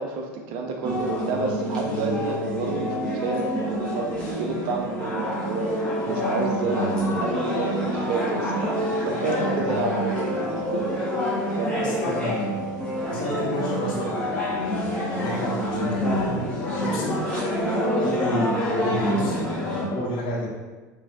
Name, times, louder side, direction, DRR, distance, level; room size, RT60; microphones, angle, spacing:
voice 1, 0.0-5.7 6.0-11.1 11.6-12.1 17.6-17.9, right 4 dB, 55° right, 2 dB, 0.7 m, -30 dB
sound 1, 0.8-19.8, equal, 10° left, 1.5 m, -27 dB
voice 2, 11.7-12.6 13.0-17.1 18.0-20.5, left 1 dB, 45° left, -6 dB, 1.4 m, -31 dB
4.0 x 3.2 x 2.4 m, 1.3 s
hypercardioid pair, 85°, 10 cm